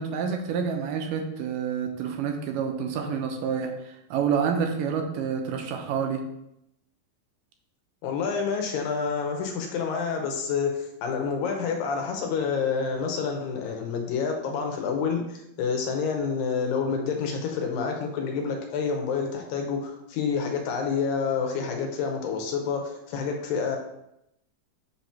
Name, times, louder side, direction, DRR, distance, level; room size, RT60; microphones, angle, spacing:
voice 1, 0.0-6.2, right 6 dB, 75° right, 3 dB, 2.2 m, -28 dB
voice 2, 8.0-23.8, left 5 dB, 75° left, 2 dB, 2.5 m, -28 dB
7.7 x 2.9 x 5.7 m, 0.81 s
omnidirectional pair, 4.3 m